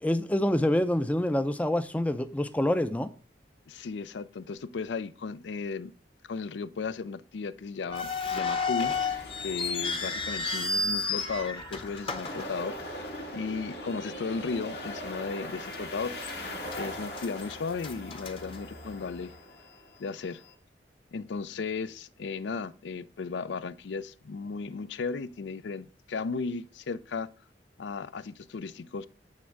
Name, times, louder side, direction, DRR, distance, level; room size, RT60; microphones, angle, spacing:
voice 1, 0.0-3.1, left 1 dB, 10° left, 0.4 m, -26 dB
voice 2, 3.7-5.9 6.2-19.3 20.0-20.4 21.1-27.3 27.8-29.1, left 4 dB, 80° left, 0.4 m, -35 dB
sound 1, 7.9-13.2 13.5-13.6 14.3-14.6 15.0-15.1 15.7-16.3 16.7-19.1, left 4 dB, 30° left, 0.9 m, -32 dB
sound 2, 8.8-20.5, left 1 dB, 65° left, 1.7 m, -41 dB
9.5 x 3.5 x 6.4 m
head